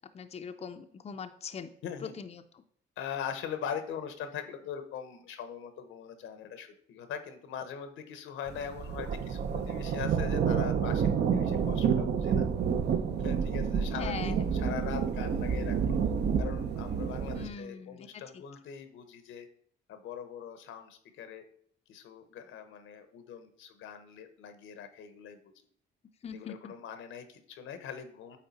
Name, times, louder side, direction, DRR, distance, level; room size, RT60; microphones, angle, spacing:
voice 1, 0.1-1.7 2.0-2.6 13.9-14.4 17.3-18.4 26.2-26.7, left 6 dB, 30° left, 7 dB, 0.5 m, -41 dB
voice 2, 1.8-2.1 3.0-12.5 13.2-16.0 16.4-19.5 19.9-21.4 21.9-25.5 26.3-28.4, left 8 dB, 85° left, 9 dB, 0.9 m, -41 dB
sound 1, 8.5-17.5, right 7 dB, 60° right, 0.7 m, -29 dB
8.9 x 3.7 x 4.1 m, 0.64 s
cardioid pair, 90°, 20 cm